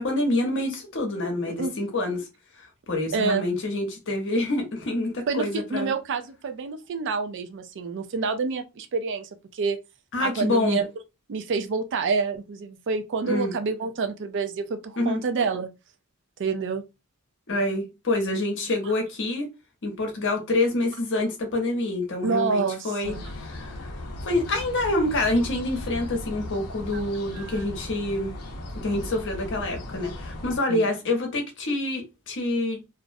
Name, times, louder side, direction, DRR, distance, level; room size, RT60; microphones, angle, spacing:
voice 1, 0.0-2.3 2.6-5.9 10.1-10.8 13.2-13.5 15.0-15.2 17.5-19.5 19.8-23.9 24.2-28.3 28.8-32.8, left 2 dB, 55° left, 0.8 m, -27 dB
voice 2, 3.1-3.5 5.3-9.8 10.2-10.9 11.3-15.7 16.4-16.8 22.2-23.2 27.3-27.6 30.7-30.9, right 4 dB, 55° right, 0.4 m, -28 dB
sound 1, 23.0-30.6, left 1 dB, 85° left, 0.6 m, -37 dB
2.5 x 2.0 x 2.5 m
head